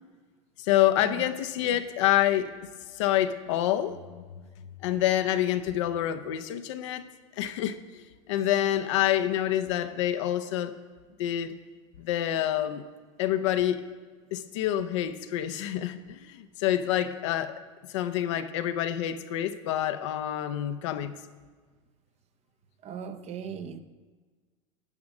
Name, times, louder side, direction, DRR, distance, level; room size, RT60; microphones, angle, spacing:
voice 1, 0.6-2.5 2.9-4.2 4.8-7.0 7.4-10.7 11.2-11.6 12.0-12.8 13.2-13.9 14.3-17.6 17.9-21.2, left 12 dB, 75° left, 10 dB, 0.7 m, -27 dB
voice 2, 22.8-23.8, right 7 dB, 45° right, 10 dB, 0.8 m, -38 dB
11.0 x 4.8 x 6.5 m, 1.4 s
hypercardioid pair, 90°, 16 cm